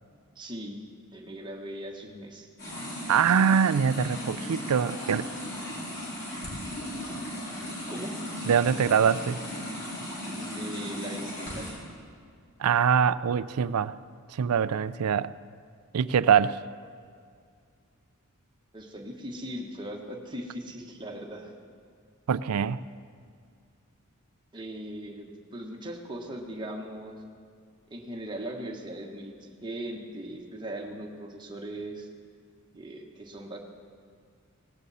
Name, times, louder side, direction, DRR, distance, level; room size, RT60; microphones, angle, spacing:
voice 1, 0.3-0.8 1.1-3.1 7.9-8.1 10.4-11.7 18.7-21.5 24.5-27.2 27.9-32.1 32.7-33.6, right 1 dB, 20° right, 1 dB, 1.4 m, -39 dB
sound 1, 2.6-11.7, equal, 50° left, 4.6 m, -36 dB
voice 2, 3.1-5.2 8.4-9.4 12.6-13.9 14.3-15.3 15.9-16.6 22.3-22.8, right 7 dB, 80° right, 16 dB, 0.4 m, -23 dB
18.0 x 16.5 x 4.2 m, 2.2 s
head